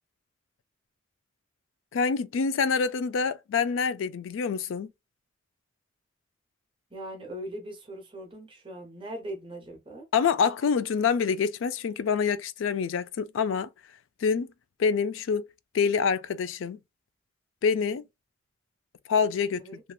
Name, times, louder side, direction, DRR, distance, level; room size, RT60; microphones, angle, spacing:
voice 1, 1.9-4.9 10.1-13.7 14.2-14.5 14.8-15.5 15.7-16.8 17.6-18.0 19.1-19.6, left 6 dB, 85° left, 0.3 m, -26 dB
voice 2, 6.9-10.1 19.6-19.8, right 1 dB, 25° right, 0.8 m, -40 dB
2.9 x 2.3 x 2.2 m
head